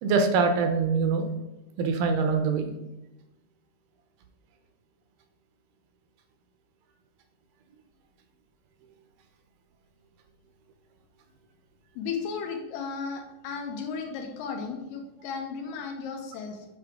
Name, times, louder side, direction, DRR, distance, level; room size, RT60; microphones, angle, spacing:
voice 1, 0.0-1.3 1.8-2.7, right 4 dB, 75° right, 6 dB, 2.1 m, -24 dB
voice 2, 12.0-16.7, left 5 dB, 85° left, 4 dB, 2.5 m, -35 dB
7.9 x 4.7 x 3.6 m, 0.97 s
omnidirectional pair, 3.9 m